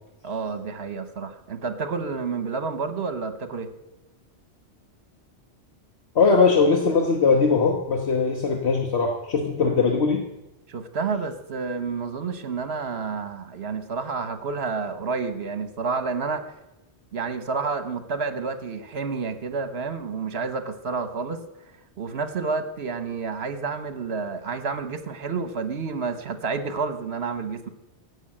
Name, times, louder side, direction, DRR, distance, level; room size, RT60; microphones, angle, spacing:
voice 1, 0.2-3.7 10.7-16.4 17.1-21.4 22.0-27.7, right 4 dB, 65° right, 9 dB, 1.3 m, -29 dB
voice 2, 6.1-10.2, left 4 dB, 70° left, 2 dB, 1.5 m, -20 dB
15.5 x 6.6 x 8.9 m, 0.97 s
omnidirectional pair, 1.2 m